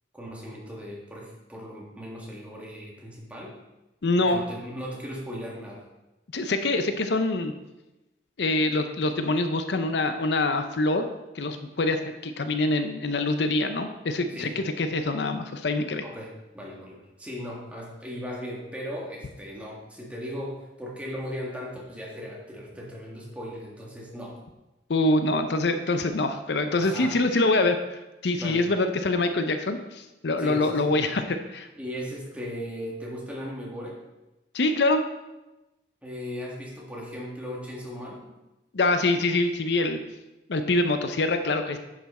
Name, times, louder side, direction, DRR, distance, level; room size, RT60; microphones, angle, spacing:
voice 1, 0.1-3.6 4.2-5.9 14.3-14.5 16.0-24.4 26.8-27.2 28.4-28.6 30.4-31.0 31.8-34.0 36.0-38.3, equal, 5° right, -3 dB, 1.6 m, -37 dB
voice 2, 4.0-4.4 6.3-7.5 8.4-11.1 11.3-16.0 24.9-31.7 34.5-35.0 38.7-40.0 40.5-41.8, left 2 dB, 70° left, 8 dB, 0.6 m, -25 dB
10.5 x 5.9 x 4.2 m, 1.0 s
head